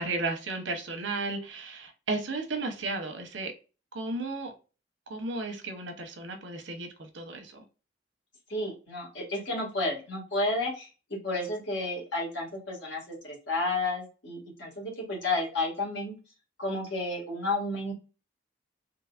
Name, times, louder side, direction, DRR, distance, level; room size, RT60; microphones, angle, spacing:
voice 1, 0.0-3.5 3.9-4.5 5.1-7.6, right 3 dB, 85° right, 0.9 m, -34 dB
voice 2, 8.5-16.2 16.6-17.9, left 2 dB, 75° left, 1.9 m, -31 dB
3.9 x 2.7 x 2.4 m
head